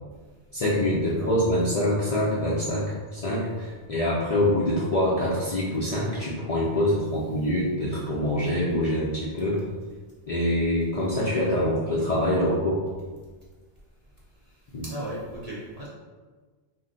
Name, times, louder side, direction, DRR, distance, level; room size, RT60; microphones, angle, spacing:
voice 1, 0.5-9.6 10.3-12.8 14.7-14.9, left 1 dB, 50° left, -7 dB, 0.4 m, -25 dB
voice 2, 14.8-15.9, equal, 50° right, -6 dB, 0.5 m, -36 dB
2.5 x 2.1 x 3.8 m, 1.4 s
omnidirectional pair, 1.1 m